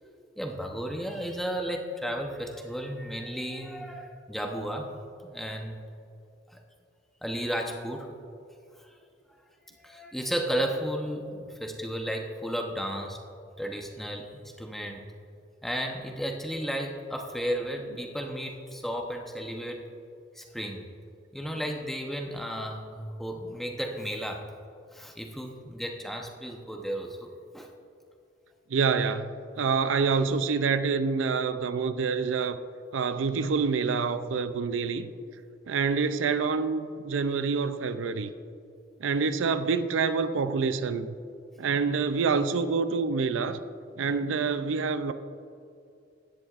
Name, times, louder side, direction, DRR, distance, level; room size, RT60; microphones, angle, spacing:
voice 1, 0.4-5.0 5.2-5.8 6.5-6.6 7.2-8.1 8.8-8.9 9.7-13.2 13.6-15.0 15.6-19.9 20.3-20.9 21.3-24.5 24.9-27.7, equal, ahead, 2 dB, 0.8 m, -34 dB
voice 2, 28.7-32.6 32.9-35.1 35.7-38.3 39.0-41.1 41.6-43.6 44.0-45.1, right 5 dB, 80° right, 11 dB, 0.4 m, -27 dB
16.0 x 10.5 x 2.5 m, 2.5 s
head